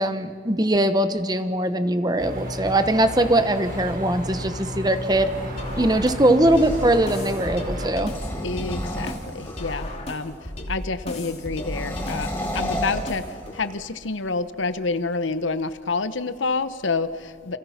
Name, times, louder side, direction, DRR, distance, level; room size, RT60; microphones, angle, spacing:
voice 1, 0.0-5.3 5.8-8.1, right 1 dB, 20° right, 10 dB, 1.0 m, -21 dB
sound 1, 2.2-7.9, left 1 dB, 45° right, 3.9 m, -33 dB
sound 2, 3.4-7.1 7.9-9.9 11.5-13.8, left 1 dB, 10° left, 4.2 m, -34 dB
sound 3, 5.6-13.6, left 1 dB, 30° left, 2.8 m, -34 dB
voice 2, 8.4-10.3 10.7-12.3 12.5-13.2 13.5-17.6, left 4 dB, 75° left, 13 dB, 1.0 m, -28 dB
29.0 x 27.0 x 5.9 m, 2.1 s
head